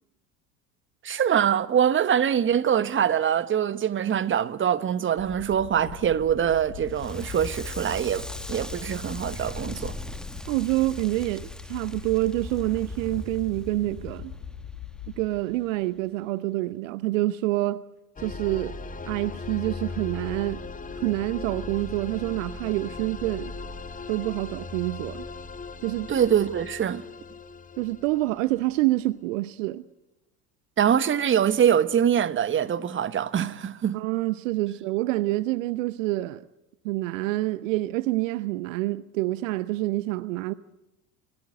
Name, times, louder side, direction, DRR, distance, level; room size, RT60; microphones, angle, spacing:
voice 1, 1.0-9.9 26.1-27.0 30.8-34.0, right 9 dB, 25° right, 1.2 m, -24 dB
sound 1, 5.2-15.2, left 15 dB, 55° left, 2.1 m, -42 dB
Crackle, 6.9-15.8, left 1 dB, ahead, 1.5 m, -39 dB
voice 2, 10.5-14.3 15.2-17.8 18.2-18.7 19.1-20.6 20.9-23.5 24.1-25.3 25.8-26.1 27.8-29.8 33.9-36.4 36.8-40.5, right 18 dB, 60° right, 0.8 m, -27 dB
sound 2, 18.2-28.8, left 4 dB, 20° left, 1.7 m, -38 dB
27.5 x 18.5 x 7.8 m
figure-of-eight pair, 70°, 44 cm